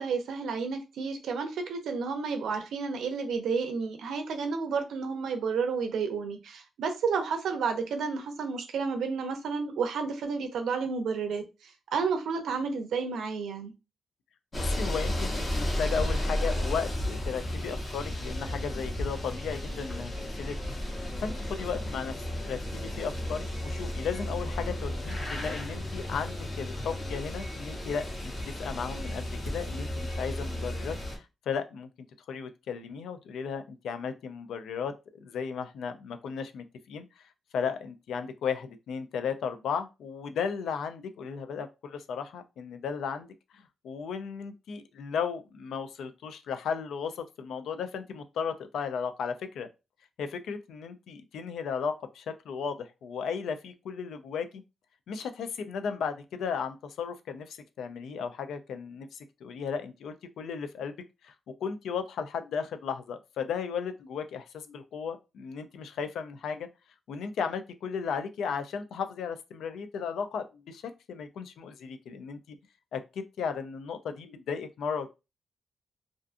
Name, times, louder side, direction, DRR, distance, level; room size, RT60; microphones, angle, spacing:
voice 1, 0.0-11.4 11.9-13.7, right 5 dB, 85° right, 0.5 m, -31 dB
voice 2, 14.5-20.6 20.8-20.9 21.2-22.1 22.4-31.9 32.3-34.9 35.2-43.3 43.8-49.7 50.2-54.6 55.1-61.0 61.2-61.3 61.6-66.7 67.1-72.6 72.9-73.0 73.4-75.1, left 6 dB, 85° left, 0.3 m, -35 dB
sound 1, 14.5-31.2, left 1 dB, 20° left, 0.7 m, -33 dB
2.5 x 2.4 x 2.4 m
wide cardioid pair, 150°, 0 cm